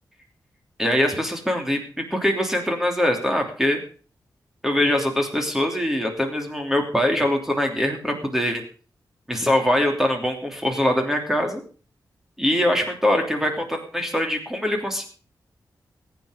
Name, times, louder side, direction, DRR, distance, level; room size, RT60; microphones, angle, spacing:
voice 1, 0.8-3.8 4.6-8.6 9.3-11.6 12.4-15.1, left 1 dB, 5° right, 3 dB, 3.0 m, -23 dB
21.0 x 9.2 x 5.1 m, 0.40 s
wide cardioid pair, 115°, 7 cm